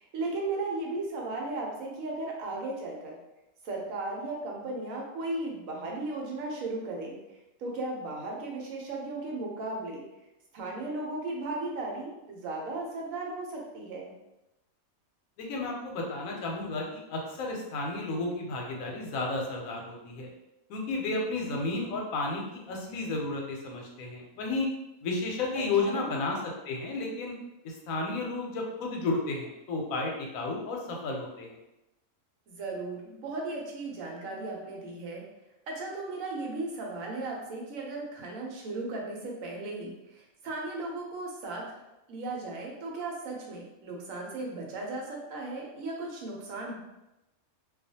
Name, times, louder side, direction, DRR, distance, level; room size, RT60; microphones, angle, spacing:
voice 1, 0.0-3.2 3.6-7.2 7.6-10.0 10.5-14.1 25.5-26.1 32.5-35.2 35.7-41.6 42.1-46.8, right 2 dB, 80° right, -1 dB, 1.1 m, -36 dB
voice 2, 15.4-20.3 20.7-24.7 25.0-26.4 26.7-27.3 27.6-31.6, left 3 dB, 90° left, 0 dB, 1.0 m, -32 dB
2.3 x 2.3 x 2.7 m, 0.93 s
omnidirectional pair, 1.4 m